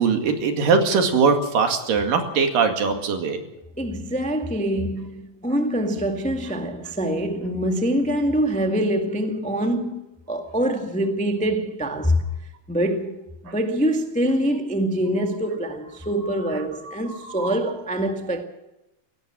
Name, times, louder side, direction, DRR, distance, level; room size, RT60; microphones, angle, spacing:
voice 1, 0.0-3.4 17.4-17.5, right 5 dB, 80° right, 3.9 m, -21 dB
voice 2, 3.8-12.2 12.7-13.1 13.5-18.4, equal, 5° left, 0.5 m, -24 dB
17.5 x 17.0 x 8.8 m
omnidirectional pair, 3.9 m